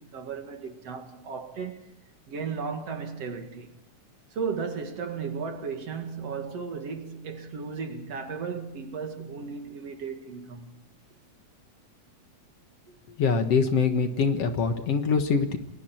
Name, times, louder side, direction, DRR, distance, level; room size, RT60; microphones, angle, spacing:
voice 1, 0.0-1.9 2.3-3.7 4.3-10.7 12.9-13.0, right 5 dB, 60° right, 2.9 m, -35 dB
voice 2, 13.2-15.6, left 5 dB, 60° left, 2.4 m, -24 dB
29.5 x 21.5 x 4.5 m
omnidirectional pair, 3.4 m